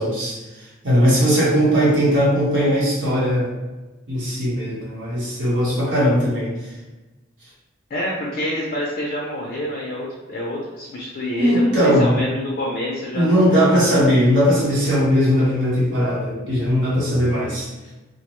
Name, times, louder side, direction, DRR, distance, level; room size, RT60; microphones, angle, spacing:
voice 1, 0.0-3.5 4.1-6.7 11.4-12.2 13.1-17.9, equal, 65° right, -8 dB, 0.9 m, -19 dB
voice 2, 7.9-13.3 13.5-14.1, left 1 dB, 45° left, -3 dB, 0.4 m, -27 dB
2.5 x 2.1 x 2.9 m, 1.1 s
head